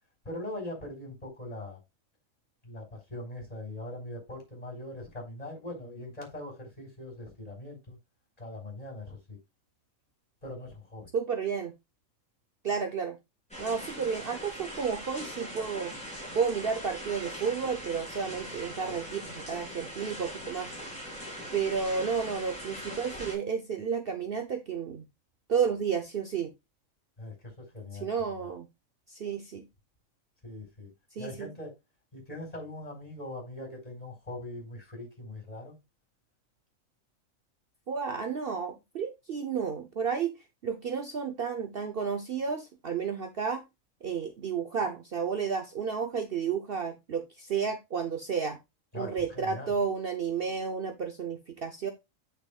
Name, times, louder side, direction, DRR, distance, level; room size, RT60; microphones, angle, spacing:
voice 1, 0.2-1.8 2.6-8.0 8.4-9.4 10.4-11.1 27.2-28.5 30.4-30.9 31.2-31.7 32.1-35.8 48.9-49.8, left 1 dB, 25° left, 4.3 m, -41 dB
voice 2, 11.1-11.7 12.6-13.2 13.6-15.9 16.3-20.7 21.5-25.0 25.5-26.5 28.0-28.7 29.1-29.7 31.1-31.5 37.9-40.3 40.6-43.6 44.0-48.6 48.9-51.9, right 6 dB, 50° right, 0.9 m, -32 dB
sound 1, 13.5-23.3, equal, 5° left, 4.1 m, -41 dB
8.6 x 6.5 x 2.4 m
omnidirectional pair, 1.4 m